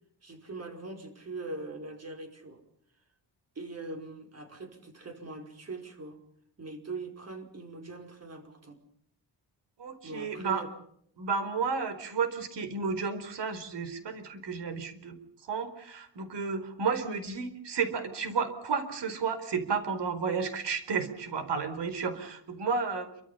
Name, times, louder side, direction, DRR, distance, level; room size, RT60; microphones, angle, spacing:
voice 1, 0.2-2.6 3.5-6.2 6.6-8.8 10.0-10.7, right 3 dB, 35° right, 5 dB, 5.1 m, -42 dB
voice 2, 9.8-10.6 11.2-23.1, right 5 dB, 80° right, 10 dB, 4.6 m, -32 dB
28.5 x 25.0 x 5.6 m, 0.67 s
wide cardioid pair, 175°, 41 cm